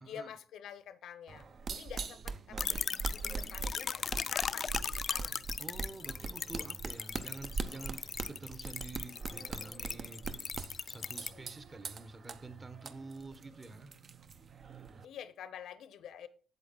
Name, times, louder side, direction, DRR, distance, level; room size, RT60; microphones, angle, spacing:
voice 1, 0.0-2.9 3.1-4.7 5.1-5.4 11.2-11.4 15.0-16.3, left 9 dB, 75° left, 0.7 m, -48 dB
sound 1, 1.3-15.1, right 4 dB, 50° right, 0.7 m, -42 dB
sound 2, 2.6-11.3, left 6 dB, 45° left, 0.4 m, -38 dB
voice 2, 5.6-13.9, right 3 dB, 30° right, 1.1 m, -48 dB
7.9 x 7.8 x 3.9 m
cardioid pair, 90°, 0 cm